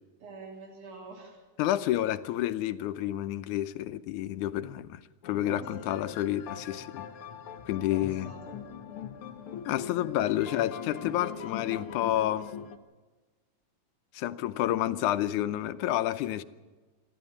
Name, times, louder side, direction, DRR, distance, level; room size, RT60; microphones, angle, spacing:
voice 1, 0.2-1.4 5.5-6.0 7.9-8.6, right 4 dB, 90° right, 4.9 m, -47 dB
voice 2, 1.6-7.1 7.7-8.3 9.7-12.5 14.1-16.4, left 13 dB, 85° left, 2.2 m, -29 dB
sound 1, 5.2-12.8, left 7 dB, 55° left, 1.7 m, -41 dB
27.0 x 12.0 x 8.6 m
omnidirectional pair, 3.4 m